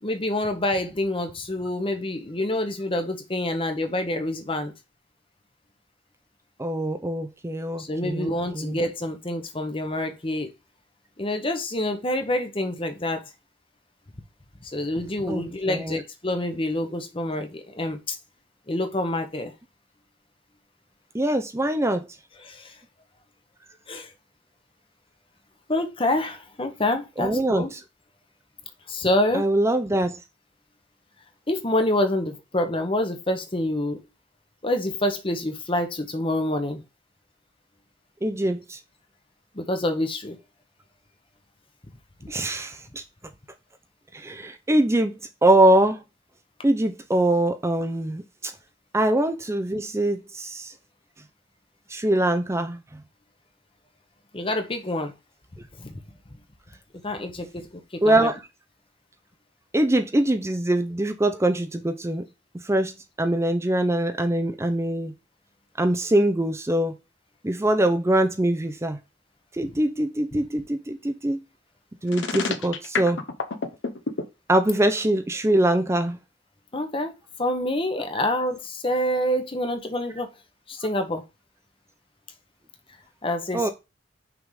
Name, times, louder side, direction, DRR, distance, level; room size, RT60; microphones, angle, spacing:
voice 1, 0.0-4.7 7.8-10.5 11.2-13.2 14.6-18.2 18.7-19.5 22.4-22.7 23.9-24.1 25.7-27.7 28.9-29.5 31.5-34.0 34.6-36.8 39.5-40.4 42.2-42.3 54.3-55.1 55.8-56.0 57.0-58.3 70.3-70.5 76.7-77.1 77.4-80.3 80.7-81.2 83.2-83.7, left 1 dB, 30° left, 1.0 m, -27 dB
voice 2, 6.6-8.8 15.3-16.0 21.1-22.0 27.2-27.8 29.3-30.2 38.2-38.8 42.3-43.0 44.1-45.1 45.4-46.0 46.6-48.5 48.9-50.7 51.9-52.8 58.0-58.4 59.7-62.2 62.6-62.9 63.2-65.1 65.8-66.9 67.4-69.0 69.6-71.4 72.0-73.2 74.5-76.2 83.5-83.7, right 1 dB, 15° right, 0.5 m, -23 dB
sound 1, 72.1-74.2, left 4 dB, 85° left, 1.0 m, -28 dB
6.0 x 3.6 x 4.8 m
head